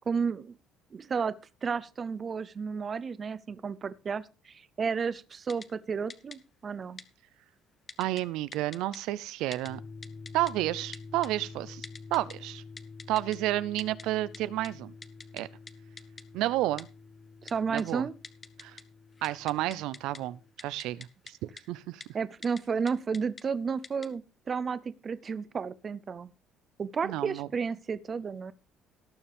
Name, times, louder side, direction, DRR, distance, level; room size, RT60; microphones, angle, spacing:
voice 1, 0.1-0.6 0.9-1.4 1.6-7.0 17.4-18.1 22.1-24.2 24.5-26.3 26.8-28.5, right 5 dB, 25° right, 0.6 m, -32 dB
Typing, 5.5-5.7 6.1-6.4 7.0-7.1 7.9-8.2 8.5-9.0 9.5-9.7 10.0-10.5 10.9-11.3 11.8-12.3 12.8-13.4 13.8-14.0 14.3-14.4 14.6-14.7 15.0-15.4 15.7-15.8 16.0-16.2 16.8-16.9 17.5-17.8 18.2-18.8 19.1-20.2 20.6-21.3 21.6-21.7 22.0-22.1 22.4-22.6 22.9-23.4 23.8-24.1, left 4 dB, 20° left, 0.8 m, -44 dB
voice 2, 8.0-9.8 10.3-11.9 12.1-12.6 13.1-14.9 15.3-15.5 16.3-16.9 17.7-18.1 18.6-18.8 19.2-21.4 21.7-22.0 27.0-27.5, right 15 dB, 75° right, 0.6 m, -31 dB
sound 1, 9.7-20.5, left 4 dB, 50° left, 1.5 m, -48 dB
18.0 x 7.1 x 3.5 m
cardioid pair, 165°, 0 cm